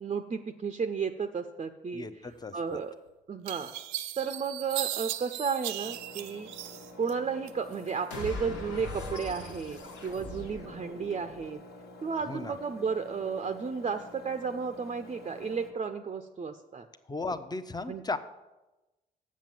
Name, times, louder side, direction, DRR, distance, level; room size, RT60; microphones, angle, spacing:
voice 1, 0.0-2.1 2.5-2.9 3.3-3.7 4.2-6.5 7.0-11.6 12.0-16.9 17.9-18.0, right 5 dB, 30° right, 8 dB, 0.6 m, -33 dB
voice 2, 1.9-2.8 12.3-12.6 17.1-18.2, left 3 dB, 20° left, 11 dB, 0.8 m, -36 dB
sound 1, 2.7-2.8 3.5-7.1 7.5-8.2, right 14 dB, 75° right, 0.4 m, -37 dB
Engine, 5.8-15.7, left 1 dB, 50° left, 1.5 m, -49 dB
sound 2, 8.1-11.5, left 1 dB, 75° left, 1.5 m, -41 dB
7.4 x 7.3 x 7.3 m, 1.1 s
hypercardioid pair, 40°, 21 cm